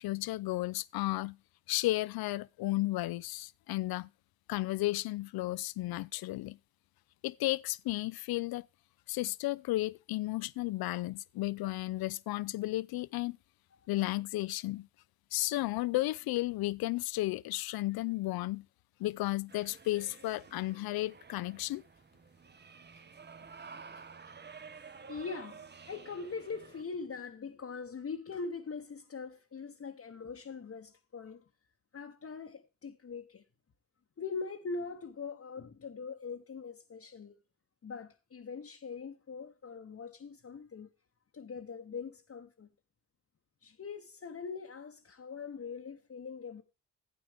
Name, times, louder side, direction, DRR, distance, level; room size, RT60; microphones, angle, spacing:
voice 1, 0.0-1.4 1.7-4.1 4.5-6.6 7.2-8.7 9.1-13.4 13.9-14.9 15.3-18.6 19.0-21.8, left 18 dB, 65° left, 0.5 m, -33 dB
sound 1, 19.5-26.8, right 5 dB, 25° right, 0.7 m, -52 dB
voice 2, 25.1-31.4 31.9-33.4 34.2-37.4 37.8-40.9 41.3-42.7 43.6-46.6, left 5 dB, 35° left, 1.0 m, -42 dB
12.5 x 8.6 x 3.4 m
hypercardioid pair, 45°, 40 cm